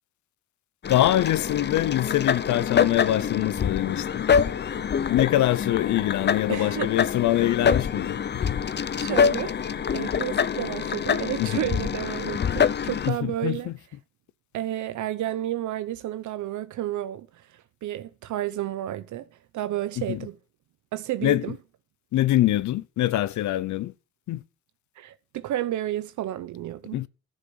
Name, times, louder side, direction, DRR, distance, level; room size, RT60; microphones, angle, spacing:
sound 1, 0.8-13.1, left 7 dB, 35° left, 0.7 m, -25 dB
voice 1, 0.9-4.2 5.1-8.2 8.5-8.6 11.4-11.7 13.0-13.8 20.1-20.2 21.2-21.5 22.1-23.9 24.3-24.4 26.9-27.1, left 14 dB, 70° left, 0.7 m, -24 dB
voice 2, 6.5-6.9 8.9-9.6 9.9-13.7 14.5-19.3 19.5-20.4 20.9-21.6 25.0-27.0, right 13 dB, 75° right, 0.8 m, -31 dB
11.0 x 6.5 x 7.8 m
cardioid pair, 90°, 30 cm